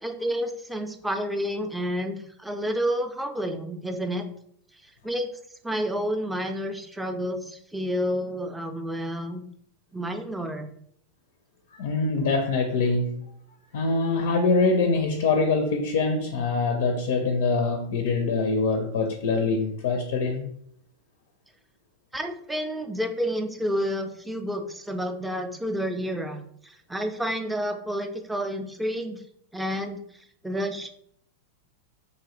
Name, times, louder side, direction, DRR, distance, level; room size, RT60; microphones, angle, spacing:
voice 1, 0.0-4.2 5.0-5.3 5.6-9.4 9.9-10.7 22.1-29.2 29.5-30.0 30.4-30.9, equal, 5° right, 0.4 m, -30 dB
voice 2, 11.7-13.3 13.7-20.5, left 3 dB, 55° left, 0.4 m, -24 dB
3.2 x 2.6 x 3.7 m
figure-of-eight pair, 90°, 0 cm